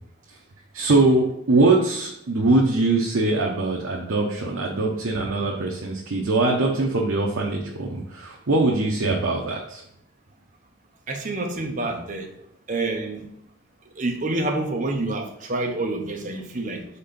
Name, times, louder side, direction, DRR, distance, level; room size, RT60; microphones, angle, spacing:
voice 1, 0.7-9.8, right 2 dB, 65° right, -1 dB, 0.8 m, -22 dB
voice 2, 11.1-12.3 12.7-13.3 14.0-16.9, right 2 dB, 35° right, 3 dB, 0.8 m, -27 dB
4.3 x 4.3 x 5.1 m, 0.76 s
head